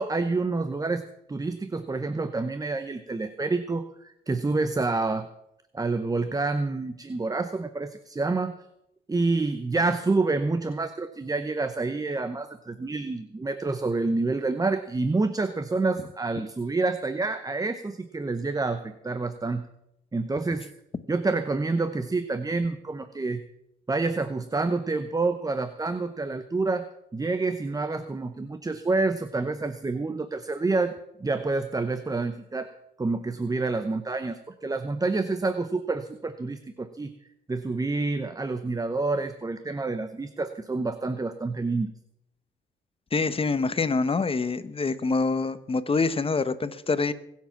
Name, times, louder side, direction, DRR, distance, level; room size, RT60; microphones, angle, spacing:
voice 1, 0.0-5.3 5.7-8.5 9.1-19.7 20.1-20.7 21.1-23.4 23.9-26.9 27.1-32.7 33.0-37.2 37.5-41.9, right 3 dB, 20° right, 10 dB, 0.9 m, -28 dB
voice 2, 43.1-47.1, left 4 dB, 30° left, 14 dB, 1.0 m, -25 dB
22.0 x 7.5 x 5.9 m, 0.82 s
cardioid pair, 90°, 20 cm